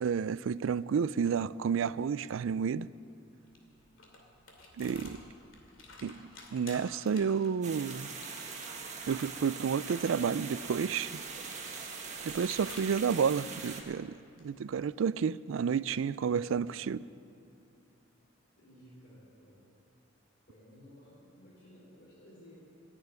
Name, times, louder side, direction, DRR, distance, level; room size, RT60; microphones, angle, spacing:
voice 1, 0.0-2.9 4.8-5.2 6.0-8.1 9.1-11.1 12.2-17.0, right 6 dB, 80° right, 19 dB, 0.4 m, -31 dB
sound 1, 3.1-14.8, left 3 dB, 85° left, 2.5 m, -53 dB
sound 2, 7.6-13.8, right 5 dB, 40° right, 1.7 m, -42 dB
voice 2, 18.6-19.6 20.5-22.6, equal, 60° left, -10 dB, 4.6 m, -56 dB
14.5 x 9.0 x 9.6 m, 2.8 s
head